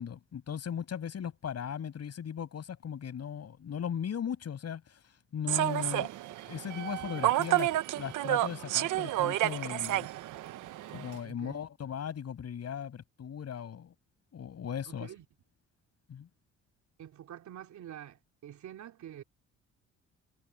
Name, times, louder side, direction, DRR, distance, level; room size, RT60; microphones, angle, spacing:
voice 1, 0.0-6.1 6.5-7.7 8.0-10.1 10.9-13.9 14.3-15.1 16.1-16.3, left 8 dB, 55° left, 7.5 m, -38 dB
Human voice / Subway metro underground, 5.5-11.2, right 15 dB, 85° right, 1.0 m, -30 dB
voice 2, 5.8-6.2 7.0-7.4 7.7-7.8 11.2-11.6 14.9-15.2 17.0-19.2, right 11 dB, 70° right, 3.2 m, -47 dB
cardioid pair, 90°, 30 cm